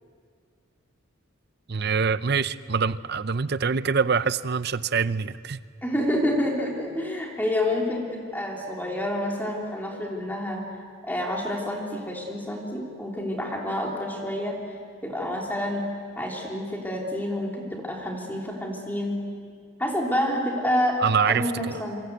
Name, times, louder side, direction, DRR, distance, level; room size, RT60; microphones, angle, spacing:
voice 1, 1.7-5.6 21.0-21.8, right 5 dB, 50° right, 15 dB, 0.7 m, -25 dB
voice 2, 5.8-10.6 11.0-14.6 15.0-15.8 16.2-19.2 19.8-21.0 21.3-22.0, left 1 dB, 10° left, -1 dB, 3.2 m, -28 dB
27.5 x 26.0 x 8.2 m, 2.1 s
head